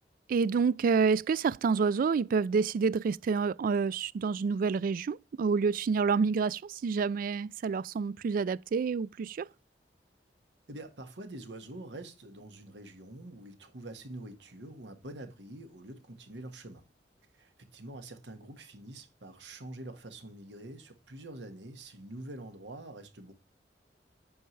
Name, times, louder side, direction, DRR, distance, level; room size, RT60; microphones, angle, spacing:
voice 1, 0.3-9.5, right 5 dB, 50° right, 0.3 m, -28 dB
voice 2, 10.7-16.9 17.3-23.3, right 1 dB, 85° right, 1.5 m, -46 dB
8.7 x 5.7 x 3.2 m
head